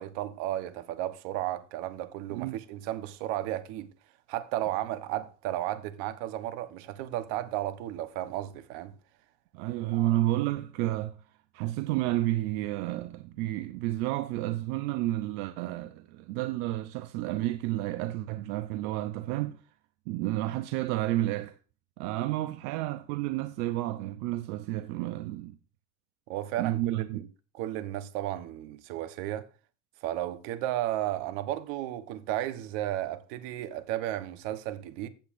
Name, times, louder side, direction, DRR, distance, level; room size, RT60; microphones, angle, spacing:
voice 1, 0.0-3.9 4.3-8.9 9.9-10.1 26.3-27.2 27.5-29.5 30.0-35.1, right 13 dB, 70° right, 1.2 m, -34 dB
voice 2, 9.5-11.2 11.5-19.6 20.1-21.5 22.0-25.6 26.6-27.3, right 15 dB, 85° right, 0.8 m, -31 dB
15.5 x 8.0 x 2.6 m
cardioid pair, 165°, 44 cm